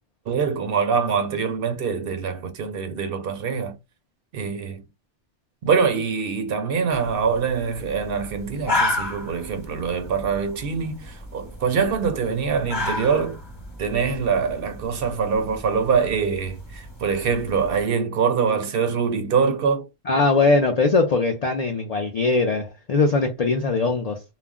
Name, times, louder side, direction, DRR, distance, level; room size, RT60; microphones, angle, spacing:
voice 1, 0.3-3.8 4.3-4.8 5.6-13.4 13.8-19.9, right 6 dB, 60° right, 0.7 m, -24 dB
sound 1, 6.9-17.8, left 2 dB, 25° left, 0.9 m, -33 dB
voice 2, 20.1-24.2, left 3 dB, 65° left, 0.4 m, -21 dB
2.4 x 2.0 x 3.5 m
omnidirectional pair, 1.2 m